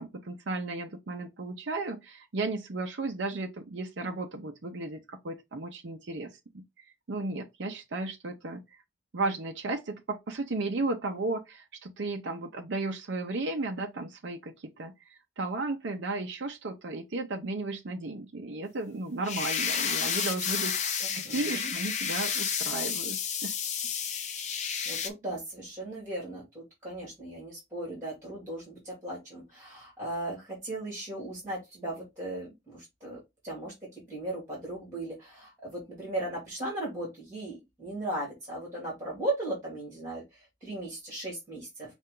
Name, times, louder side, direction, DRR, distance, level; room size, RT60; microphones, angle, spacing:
voice 1, 0.0-6.6 7.1-8.6 9.1-23.5, right 2 dB, 60° right, 0.6 m, -34 dB
sound 1, 19.2-25.1, left 7 dB, 35° left, 0.6 m, -31 dB
voice 2, 21.0-21.7 24.9-41.9, right 1 dB, 15° right, 2.2 m, -37 dB
5.5 x 2.4 x 3.7 m
head